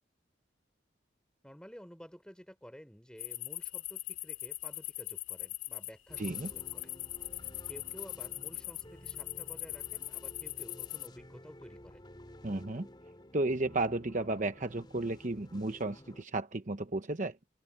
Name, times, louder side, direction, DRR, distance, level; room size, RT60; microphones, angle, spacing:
voice 1, 1.4-6.9 7.7-12.0, equal, 5° left, 4.1 m, -52 dB
sound 1, 3.2-11.1, left 16 dB, 90° left, 2.5 m, -40 dB
sound 2, 6.1-16.2, left 1 dB, 25° left, 3.3 m, -53 dB
voice 2, 6.2-6.5 12.4-12.9 13.3-17.3, right 2 dB, 40° right, 0.9 m, -33 dB
head